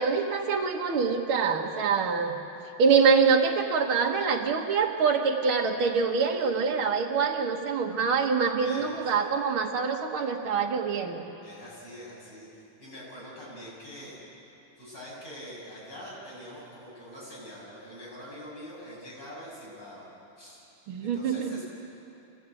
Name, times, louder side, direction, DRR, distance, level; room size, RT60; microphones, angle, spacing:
voice 1, 0.0-2.3 2.8-11.2 20.9-21.6, right 5 dB, 80° right, 1 dB, 2.3 m, -25 dB
voice 2, 8.6-9.3 11.4-12.5 12.8-14.2 14.8-20.1 20.4-20.7 21.0-21.6, equal, 55° left, -6 dB, 8.7 m, -44 dB
26.0 x 17.5 x 9.1 m, 3.0 s
omnidirectional pair, 2.3 m